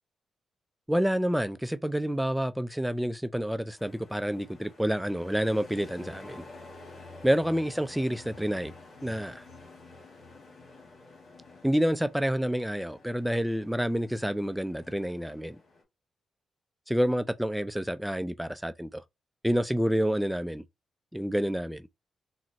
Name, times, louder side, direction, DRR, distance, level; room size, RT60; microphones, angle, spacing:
voice 1, 0.9-6.4 7.2-8.7 9.0-9.4 11.6-15.6 16.9-19.0 19.4-20.6 21.1-21.9, equal, 5° right, 0.4 m, -28 dB
sound 1, 3.8-15.8, left 3 dB, 65° left, 1.6 m, -50 dB
3.8 x 2.1 x 2.6 m
supercardioid pair, 50°, 0 cm